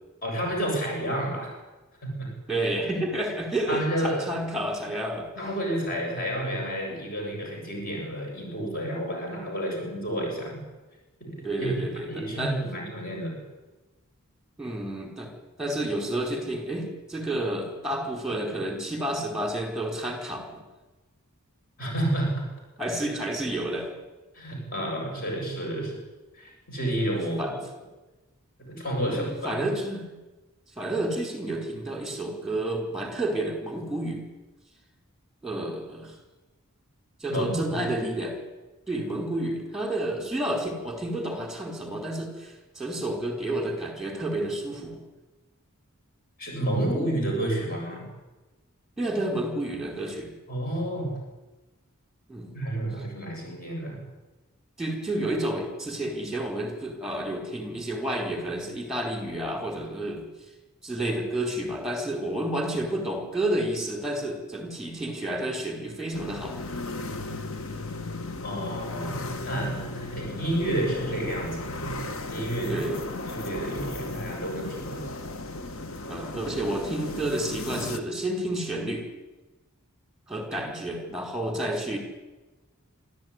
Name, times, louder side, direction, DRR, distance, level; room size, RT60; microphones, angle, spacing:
voice 1, 0.2-1.6 2.0-2.3 3.7-4.3 5.4-10.6 11.2-11.7 12.1-13.4 21.8-22.4 24.3-26.0 26.3-27.6 28.6-29.7 37.3-37.9 46.4-48.1 50.5-51.1 52.5-54.0 68.4-72.9 73.3-75.1, right 1 dB, 40° left, 0 dB, 7.2 m, -30 dB
voice 2, 2.5-5.3 11.4-12.6 14.6-15.3 15.6-20.6 22.8-23.9 27.2-27.5 29.0-30.1 30.8-34.2 35.4-36.1 37.2-38.4 38.9-45.0 49.0-50.3 52.3-52.5 54.8-60.2 60.8-66.6 72.7-73.0 76.1-79.0 80.3-82.0, right 1 dB, ahead, 3 dB, 4.5 m, -30 dB
sound 1, 66.1-78.0, left 2 dB, 65° left, 1.5 m, -35 dB
25.5 x 13.5 x 9.8 m, 1.2 s
head